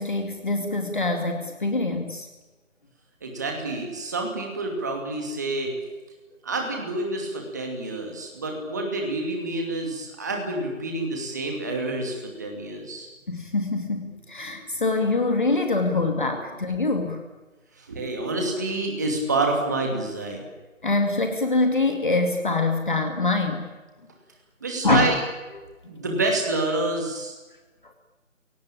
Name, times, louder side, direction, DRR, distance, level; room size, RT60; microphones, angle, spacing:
voice 1, 0.0-2.3 13.3-17.2 20.8-23.7 24.8-25.2 25.5-25.6, left 3 dB, 40° left, 4 dB, 2.4 m, -24 dB
voice 2, 3.2-5.7 6.4-13.1 15.9-16.1 17.8-20.4 24.6-25.2 25.9-27.3, right 2 dB, 15° right, 1 dB, 2.6 m, -28 dB
30.0 x 18.5 x 8.9 m, 1.2 s
figure-of-eight pair, 175°, 39 cm